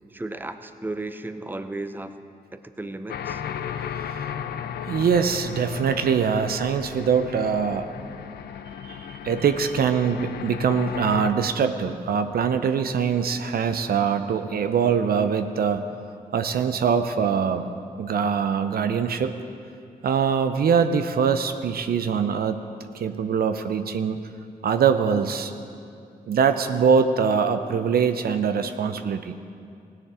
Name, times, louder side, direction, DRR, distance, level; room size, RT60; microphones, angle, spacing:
voice 1, 0.1-2.1 2.5-3.4, right 2 dB, 10° right, 9 dB, 0.7 m, -34 dB
sound 1, 3.1-11.3, left 9 dB, 75° left, 0.5 m, -34 dB
voice 2, 3.8-4.3 4.8-7.9 8.8-15.8 16.3-17.7 18.0-19.3 20.0-22.6 22.9-24.2 24.6-25.5 26.3-29.3, right 6 dB, 65° right, 9 dB, 0.6 m, -23 dB
17.0 x 9.9 x 3.7 m, 2.5 s
supercardioid pair, 40°, 17 cm